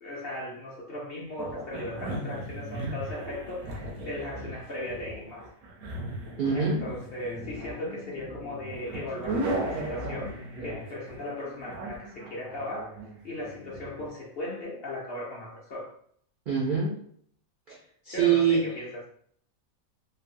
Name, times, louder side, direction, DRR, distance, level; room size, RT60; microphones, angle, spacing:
voice 1, 0.0-5.5 6.5-10.4 10.6-13.0 13.2-15.9 18.1-19.0, left 1 dB, 55° left, -4 dB, 0.7 m, -37 dB
sound 1, 1.4-14.1, right 1 dB, 85° right, 1.2 m, -37 dB
voice 2, 6.4-6.8 16.5-17.1 17.7-17.8 18.0-18.7, right 6 dB, 65° right, -4 dB, 0.5 m, -24 dB
3.2 x 2.0 x 2.6 m, 0.63 s
omnidirectional pair, 1.5 m